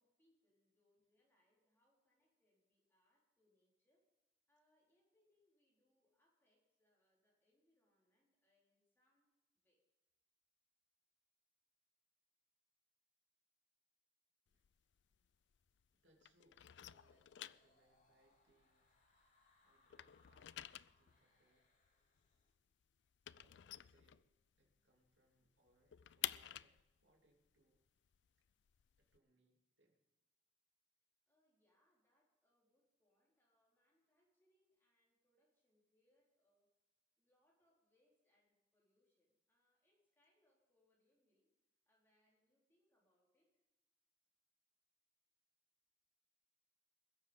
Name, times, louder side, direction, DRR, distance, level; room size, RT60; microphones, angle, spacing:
voice 1, 0.0-4.1 4.5-9.8 31.3-36.7 37.2-41.5 41.9-43.7, left 1 dB, 15° left, -4 dB, 4.1 m, -82 dB
sound 1, 14.5-15.9 16.2-19.4 19.7-24.7 25.1-25.2 25.5-29.2, left 13 dB, 70° left, 0.4 m, -51 dB
voice 2, 15.9-21.8 23.3-24.2 24.6-27.8 29.0-30.0, right 2 dB, 85° right, 0 dB, 3.0 m, -78 dB
sound 2, 16.9-22.5, left 2 dB, 50° left, 3.3 m, -77 dB
21.5 x 7.4 x 5.3 m, 1.2 s
head